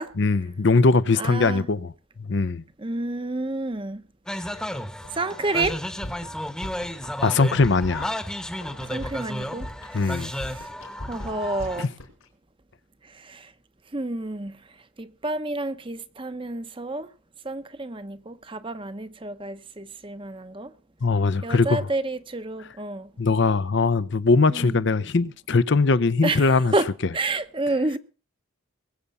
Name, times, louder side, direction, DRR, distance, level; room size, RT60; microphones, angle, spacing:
voice 1, 0.2-1.9 2.3-2.6 7.2-8.2 9.9-10.3 11.8-11.9 21.0-21.9 23.2-26.7, left 3 dB, 55° left, 0.6 m, -21 dB
voice 2, 1.2-1.7 2.8-4.0 5.1-5.8 8.9-9.7 9.9-10.3 10.5-10.7 11.1-11.9 13.2-13.5 13.9-14.6 15.0-17.1 17.4-20.7 21.4-23.1 24.5-24.8 26.2-28.0, right 2 dB, 25° right, 0.8 m, -29 dB
sound 1, 4.3-11.9, equal, 5° left, 1.0 m, -33 dB
sound 2, 5.0-5.1 5.4-6.3 6.6-7.1 7.4-12.2, left 1 dB, 85° left, 4.4 m, -38 dB
21.0 x 8.3 x 5.5 m
head